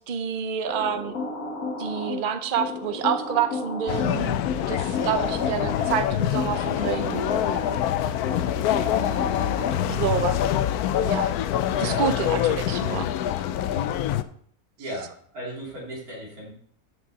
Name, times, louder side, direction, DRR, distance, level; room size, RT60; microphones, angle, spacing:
voice 1, 0.1-1.1 1.8-4.4 4.7-7.4 9.9-10.4 11.0-11.3 11.8-13.1, right 8 dB, 45° right, 10 dB, 0.8 m, -28 dB
sound 1, 0.7-10.1, left 3 dB, 60° left, 2.2 m, -33 dB
sound 2, 3.9-14.2, left 11 dB, 80° left, 1.1 m, -25 dB
voice 2, 11.7-12.5 14.8-16.5, equal, 70° right, -4 dB, 3.3 m, -37 dB
14.5 x 6.5 x 4.0 m, 0.62 s
omnidirectional pair, 1.6 m